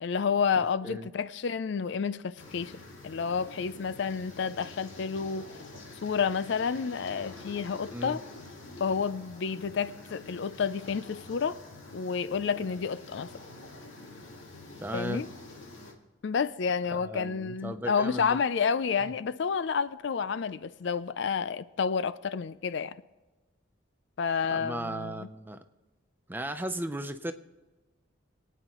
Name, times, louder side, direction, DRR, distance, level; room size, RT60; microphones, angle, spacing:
voice 1, 0.0-5.5 6.0-8.2 8.8-11.6 11.9-13.3 14.9-15.3 16.2-23.0 24.2-25.3, left 6 dB, 60° left, 0.4 m, -30 dB
sound 1, 2.4-15.9, left 2 dB, 85° left, 2.1 m, -47 dB
voice 2, 14.8-15.2 16.9-18.4 24.5-25.6 26.3-27.3, right 1 dB, 10° right, 0.6 m, -36 dB
24.5 x 9.2 x 3.0 m
head